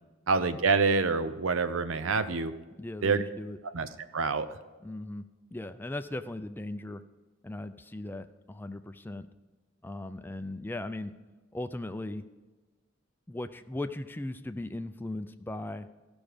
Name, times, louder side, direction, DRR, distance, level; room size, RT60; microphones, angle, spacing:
voice 1, 0.3-2.5 3.0-3.2 3.7-4.5, right 4 dB, 90° right, 12 dB, 0.6 m, -27 dB
voice 2, 2.8-3.6 4.8-5.2 5.5-7.0 7.4-9.3 9.8-11.1 11.5-12.2 13.3-15.9, left 1 dB, 10° left, 9 dB, 0.4 m, -38 dB
14.5 x 6.1 x 5.1 m, 1.2 s
head